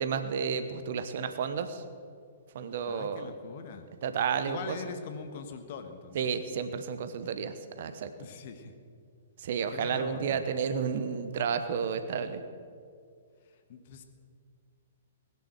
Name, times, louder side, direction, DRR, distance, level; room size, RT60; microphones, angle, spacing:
voice 1, 0.0-1.8 2.5-3.3 4.0-4.8 6.1-8.1 9.4-12.4, right 6 dB, 50° right, 10 dB, 1.2 m, -31 dB
voice 2, 2.8-3.9 4.4-6.4 8.2-8.7 9.7-10.4 13.5-14.0, left 6 dB, 45° left, 7 dB, 1.6 m, -42 dB
19.5 x 10.5 x 6.5 m, 2.2 s
figure-of-eight pair, 115°, 0 cm